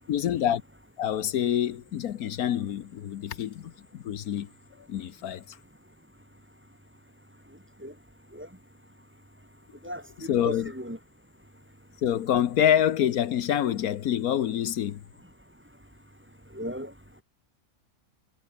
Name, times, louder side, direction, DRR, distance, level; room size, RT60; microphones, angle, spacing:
voice 1, 0.1-0.6 1.0-4.5 4.9-5.6 10.3-10.7 12.0-15.0, left 10 dB, 75° left, 1.3 m, -26 dB
voice 2, 9.8-11.0 16.5-16.9, equal, 5° right, 3.1 m, -36 dB
omnidirectional pair, 1.6 m